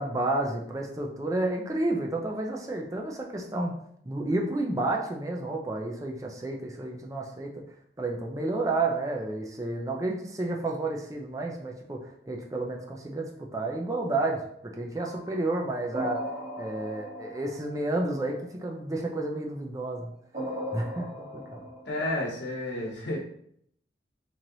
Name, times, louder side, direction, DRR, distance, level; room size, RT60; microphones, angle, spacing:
voice 1, 0.0-3.7 4.0-7.6 8.0-14.4 14.8-16.2 16.6-20.1 20.7-21.6, right 2 dB, 20° right, 1 dB, 0.5 m, -31 dB
sound 1, 15.0-18.3 20.3-22.1, equal, 40° right, 1.5 m, -37 dB
voice 2, 21.8-23.2, left 1 dB, 85° left, -1 dB, 1.1 m, -31 dB
3.1 x 2.9 x 3.9 m, 0.67 s
head